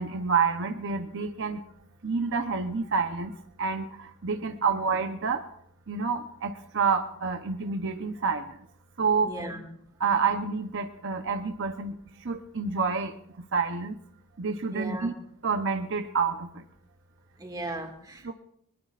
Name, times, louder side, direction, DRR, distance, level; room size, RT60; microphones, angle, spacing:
voice 1, 0.0-1.6 2.0-3.3 3.6-5.4 5.9-8.4 9.0-9.3 10.0-11.9 12.2-13.1 13.5-14.0 14.4-15.1 15.4-16.6 18.2-18.3, right 5 dB, 60° right, 6 dB, 0.8 m, -28 dB
voice 2, 9.2-9.6 14.7-15.1 17.4-18.3, right 1 dB, 20° right, 3 dB, 2.1 m, -37 dB
22.0 x 21.0 x 2.5 m, 0.70 s
head